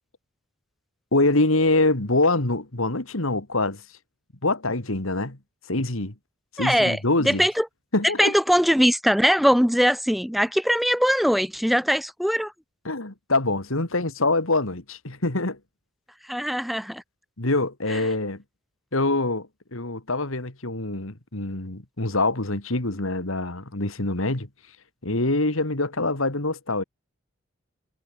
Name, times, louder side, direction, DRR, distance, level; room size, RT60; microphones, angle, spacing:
voice 1, 1.1-3.8 4.4-5.4 5.7-6.1 6.5-7.4 7.9-8.3 12.8-15.6 17.4-18.4 18.9-24.5 25.0-26.8, left 2 dB, 70° left, 2.6 m, -25 dB
voice 2, 6.6-7.7 8.2-12.5 16.2-17.0 17.9-18.0, equal, ahead, 0.7 m, -21 dB
head